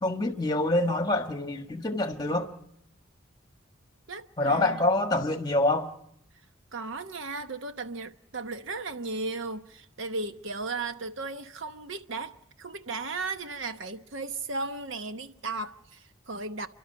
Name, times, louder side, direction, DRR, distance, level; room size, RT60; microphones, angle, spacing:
voice 1, 0.0-2.5 4.4-5.9, left 2 dB, 20° left, 1.4 m, -26 dB
voice 2, 4.1-4.8 6.7-16.7, right 3 dB, 65° right, 1.0 m, -36 dB
30.0 x 12.0 x 9.8 m
head